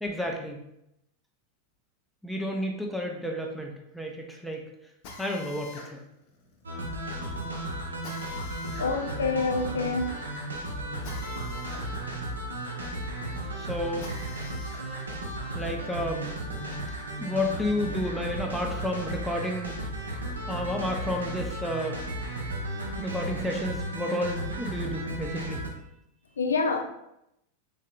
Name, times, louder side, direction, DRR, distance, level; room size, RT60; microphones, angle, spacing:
voice 1, 0.0-0.6 2.2-4.7 5.2-6.0 13.6-14.1 15.5-16.3 17.2-19.7 20.5-22.0 23.0-25.6, left 1 dB, ahead, 0 dB, 0.5 m, -31 dB
Drill, 5.0-14.9 15.3-16.9, left 4 dB, 45° left, 0.7 m, -47 dB
sound 1, 6.6-25.7, right 1 dB, 75° right, 0.7 m, -35 dB
voice 2, 8.8-10.1 26.4-26.8, left 4 dB, 70° left, 4 dB, 0.3 m, -27 dB
3.7 x 3.2 x 2.2 m, 0.82 s
figure-of-eight pair, 90°, 0 cm